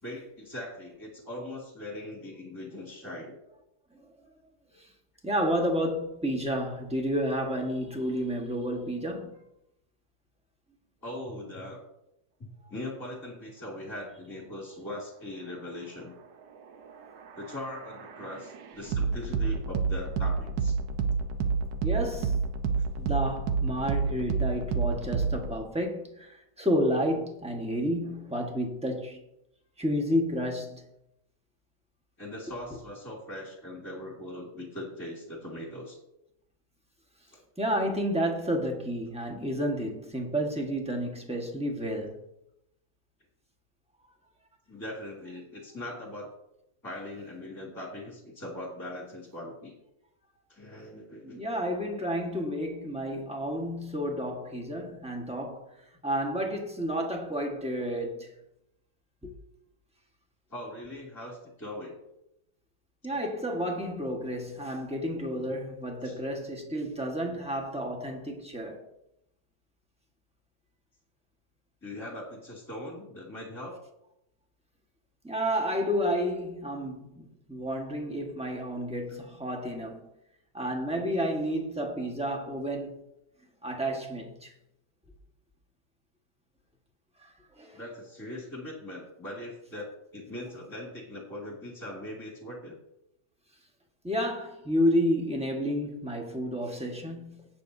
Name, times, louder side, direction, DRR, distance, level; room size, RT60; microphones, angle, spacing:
voice 1, 0.0-3.3 11.0-11.8 12.4-16.2 17.4-20.8 32.2-36.0 37.3-37.4 44.7-46.3 46.8-49.7 50.5-51.4 60.5-62.0 63.1-63.2 66.0-66.2 71.8-73.8 79.1-79.2 87.7-92.8, left 1 dB, 10° left, 2.3 m, -40 dB
voice 2, 5.2-9.4 21.8-22.4 23.0-29.2 29.8-30.8 37.6-42.2 51.3-55.6 56.0-58.3 59.2-59.3 63.0-68.8 75.2-80.1 80.5-83.0 83.6-84.5 87.2-87.8 94.0-97.5, equal, 5° right, 1.2 m, -31 dB
sound 1, 16.9-25.5, right 5 dB, 80° right, 1.5 m, -29 dB
17.0 x 6.8 x 2.7 m
omnidirectional pair, 1.9 m